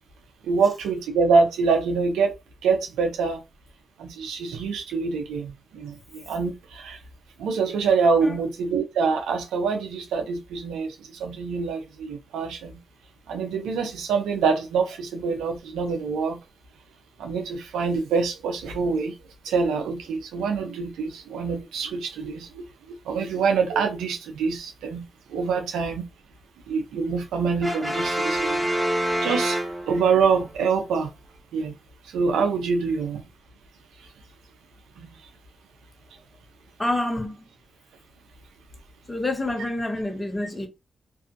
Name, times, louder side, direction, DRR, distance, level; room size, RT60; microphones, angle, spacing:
voice 1, 0.4-2.3 2.6-3.4 4.0-7.0 7.4-12.8 13.3-16.4 17.2-19.1 19.4-22.6 23.1-25.0 25.3-26.1 26.7-28.7 29.0-31.1 31.5-31.7 32.1-33.2 35.0-35.1, right 5 dB, 90° right, 0.6 m, -25 dB
Brass instrument, 27.6-30.3, right 1 dB, ahead, 0.7 m, -26 dB
voice 2, 36.8-37.4 39.1-40.7, left 1 dB, 25° left, 1.0 m, -27 dB
2.6 x 2.4 x 2.6 m
supercardioid pair, 45°, 0 cm